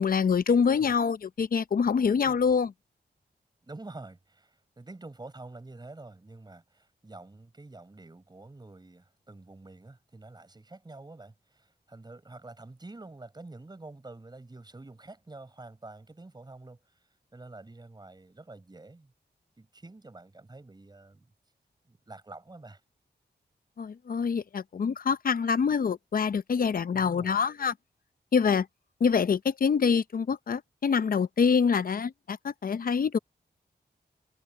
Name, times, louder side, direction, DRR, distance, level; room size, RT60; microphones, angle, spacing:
voice 1, 0.0-2.7 23.8-27.7 28.3-28.7 29.0-33.2, left 6 dB, 55° left, 0.6 m, -25 dB
voice 2, 3.6-16.8 17.3-19.1 19.6-21.3 21.9-22.8 26.9-27.5, right 2 dB, 25° right, 6.4 m, -47 dB
wide cardioid pair, 160°, 18 cm